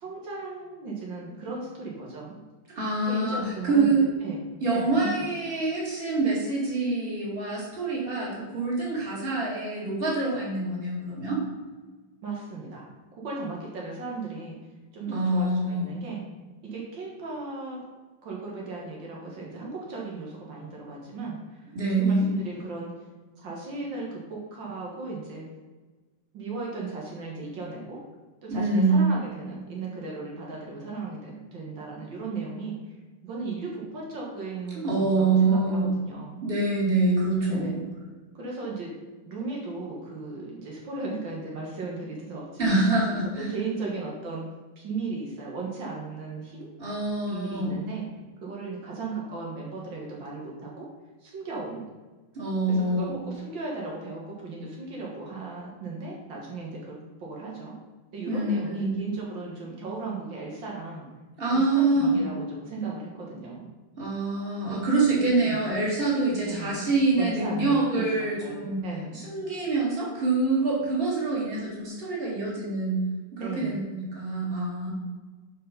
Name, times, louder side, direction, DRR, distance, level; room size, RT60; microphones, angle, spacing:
voice 1, 0.0-2.4 3.0-5.3 12.2-12.9 13.1-14.6 14.9-16.2 16.6-17.8 18.2-22.9 23.4-25.5 26.3-28.0 28.4-32.8 33.2-36.4 37.4-37.7 38.3-38.9 39.3-42.9 43.4-44.4 44.8-46.7 47.3-48.1 48.4-50.9 51.2-51.8 52.7-57.7 58.1-61.1 61.5-63.7 64.7-64.8 65.4-65.6 66.5-66.9 67.2-69.2 73.4-73.9, right 3 dB, 80° right, -3 dB, 2.1 m, -36 dB
voice 2, 2.7-4.1 4.6-11.4 15.1-15.9 21.7-22.3 28.5-29.0 34.8-35.9 36.4-37.8 42.6-43.5 46.8-47.8 52.3-53.2 58.3-59.0 61.4-62.2 64.0-68.8 69.1-73.1 73.4-74.9, right 3 dB, 30° right, -5 dB, 2.3 m, -25 dB
7.1 x 4.9 x 5.2 m, 1.3 s
omnidirectional pair, 2.0 m